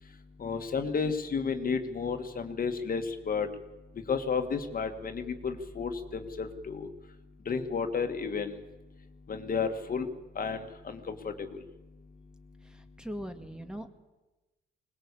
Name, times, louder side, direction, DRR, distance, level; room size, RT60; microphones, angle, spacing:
voice 1, 0.4-3.5 4.1-6.9 7.5-8.5 9.3-10.1 10.4-11.5, left 5 dB, 45° left, 7 dB, 2.0 m, -32 dB
voice 2, 12.7-13.9, equal, 5° right, 6 dB, 2.0 m, -40 dB
21.0 x 19.5 x 8.5 m, 1.1 s
cardioid pair, 90°, 20 cm